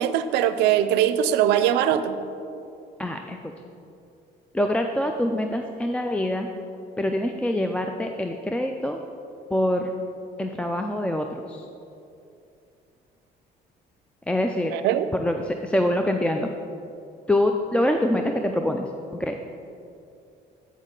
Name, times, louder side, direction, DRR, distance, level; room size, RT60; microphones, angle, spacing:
voice 1, 0.0-2.2 14.7-15.1, right 10 dB, 85° right, 11 dB, 0.4 m, -21 dB
voice 2, 3.0-3.5 4.5-6.5 7.0-9.0 9.5-9.9 10.4-11.7 14.3-14.8 15.1-16.5 17.3-18.9 19.1-19.4, left 1 dB, 5° left, 4 dB, 0.3 m, -25 dB
8.2 x 6.2 x 3.7 m, 2.6 s
cardioid pair, 110°, 17 cm